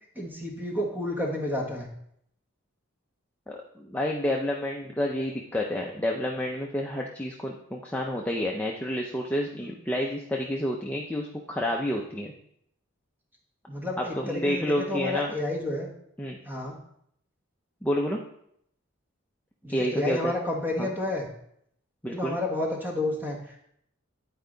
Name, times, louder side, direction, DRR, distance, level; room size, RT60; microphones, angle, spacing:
voice 1, 0.1-1.9 9.6-9.7 13.7-15.9 16.4-16.8 19.6-21.3 22.1-23.4, left 1 dB, 10° right, 0 dB, 1.3 m, -30 dB
voice 2, 3.5-12.3 14.0-15.3 16.2-16.4 17.8-18.2 19.7-20.3 20.8-20.9 22.0-22.4, left 1 dB, 5° left, -1 dB, 0.5 m, -29 dB
10.0 x 4.7 x 3.9 m, 0.71 s
head